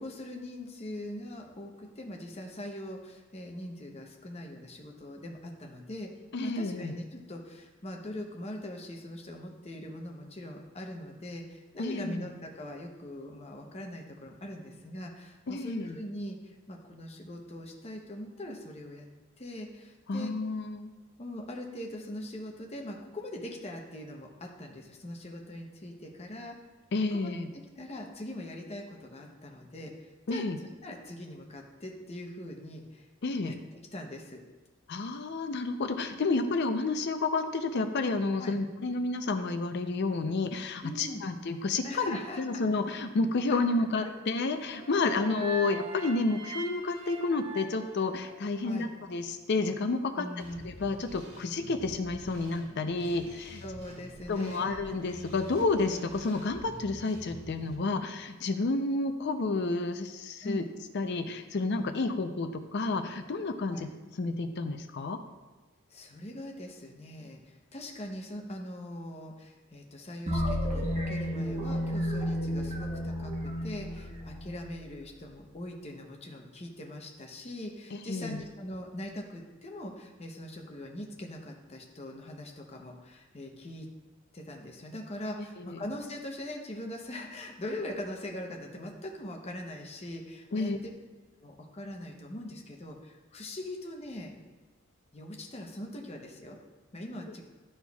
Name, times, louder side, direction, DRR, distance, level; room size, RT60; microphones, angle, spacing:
voice 1, 0.0-6.1 6.4-19.1 19.4-20.3 21.2-26.5 27.1-27.3 27.8-30.4 30.8-33.1 33.4-33.5 33.9-34.4 38.4-38.6 40.8-41.2 41.8-42.4 43.5-43.6 44.0-44.1 45.0-45.1 48.6-48.9 50.2-50.6 53.6-54.9 60.4-60.7 63.7-63.9 65.9-83.9 84.3-90.9 91.4-94.3 95.1-96.6 96.9-97.4, left 1 dB, 30° left, 1 dB, 0.8 m, -41 dB
voice 2, 6.3-6.9 11.8-12.3 15.5-16.0 20.1-20.9 26.9-27.5 30.3-30.6 33.2-33.5 34.9-50.3 50.6-53.6 54.3-60.6 60.9-63.8 64.2-65.2 77.9-78.4 85.6-85.8 90.5-90.8, left 3 dB, 55° left, 7 dB, 0.5 m, -30 dB
sound 1, 44.6-48.8, right 3 dB, 70° right, 1.4 m, -42 dB
sound 2, 50.4-57.8, equal, 55° right, 1.7 m, -48 dB
sound 3, 70.3-75.0, equal, 35° right, 1.0 m, -32 dB
12.0 x 4.4 x 2.3 m, 1.2 s
head